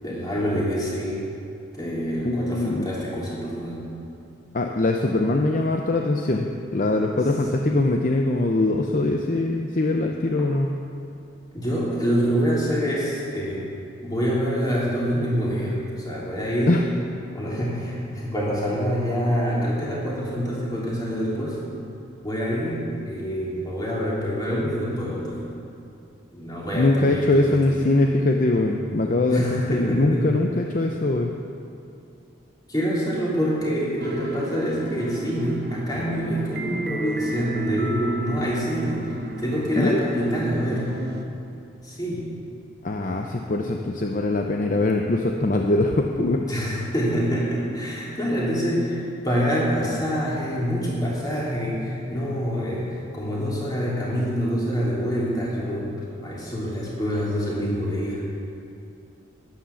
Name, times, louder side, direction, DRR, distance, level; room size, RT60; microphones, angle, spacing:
voice 1, 0.0-1.2 1.7-3.9 11.5-13.7 14.0-16.8 17.3-21.6 22.2-25.5 26.3-27.7 29.3-30.2 32.7-39.1 39.4-41.0 41.8-42.2 46.5-56.0 56.2-58.2, equal, 20° left, -6 dB, 3.1 m, -26 dB
voice 2, 2.2-2.9 4.5-10.7 16.7-16.8 26.7-31.3 39.8-40.0 42.8-46.5, left 2 dB, 40° left, 2 dB, 0.6 m, -22 dB
sound 1, 34.0-41.2, right 1 dB, 50° right, 1.0 m, -35 dB
11.5 x 10.0 x 7.1 m, 2.6 s
head